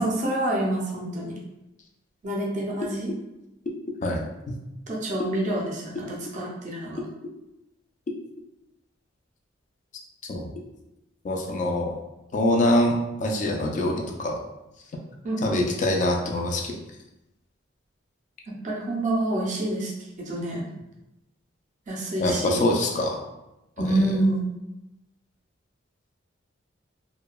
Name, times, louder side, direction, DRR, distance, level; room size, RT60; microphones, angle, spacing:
voice 1, 0.0-1.4 2.2-3.1 4.9-7.0 15.2-15.6 18.5-20.6 21.9-22.6 23.8-24.5, right 1 dB, 40° right, -2 dB, 0.5 m, -27 dB
voice 2, 4.0-4.6 10.3-10.5 11.2-12.0 12.3-14.4 15.4-16.8 22.2-23.2 23.8-23.9, left 1 dB, 40° left, 1 dB, 0.3 m, -24 dB
2.7 x 2.1 x 2.2 m, 0.94 s
head